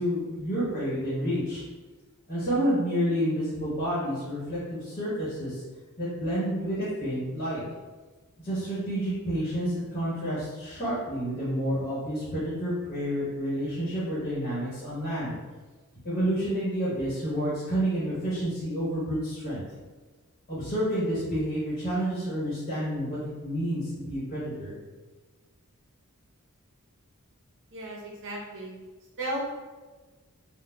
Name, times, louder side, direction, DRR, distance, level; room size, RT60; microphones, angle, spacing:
voice 1, 0.0-1.6 2.3-5.6 6.0-7.6 8.4-15.4 16.0-19.6 20.5-24.7, equal, 40° left, -9 dB, 1.1 m, -29 dB
voice 2, 27.7-28.8 29.2-29.4, right 1 dB, 60° right, -3 dB, 0.8 m, -35 dB
4.2 x 2.3 x 2.3 m, 1.3 s
head